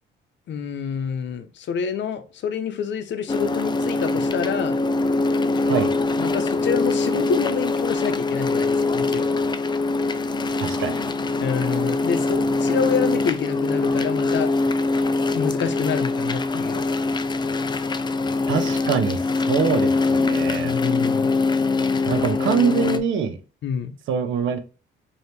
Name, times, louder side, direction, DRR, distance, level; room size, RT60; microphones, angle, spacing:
voice 1, 0.5-4.8 6.2-9.3 11.4-14.5 15.3-16.8 20.5-21.3 23.6-23.9, left 7 dB, 65° left, 0.7 m, -27 dB
sound 1, 3.3-23.0, left 3 dB, 20° left, 0.4 m, -23 dB
voice 2, 10.6-11.0 18.5-19.2 19.5-20.7 22.1-23.4 24.1-24.6, right 6 dB, 75° right, 0.7 m, -23 dB
4.3 x 2.8 x 3.2 m
cardioid pair, 90°, 20 cm